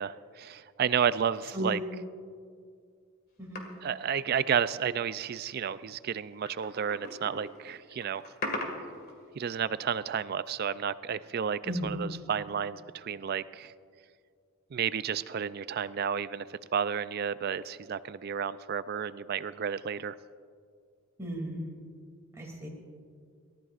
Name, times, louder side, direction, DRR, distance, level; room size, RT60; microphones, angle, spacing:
voice 1, 0.0-1.8 3.8-8.3 9.4-13.7 14.7-20.2, right 7 dB, 45° right, 15 dB, 0.3 m, -31 dB
sound 1, 3.6-4.9 5.2-5.3 6.2-9.4 9.8-9.9, left 1 dB, 45° left, 2.0 m, -39 dB
voice 2, 11.7-12.0 21.2-21.7 22.4-22.7, right 1 dB, 15° right, -2 dB, 2.6 m, -34 dB
27.5 x 14.0 x 2.5 m, 2.2 s
head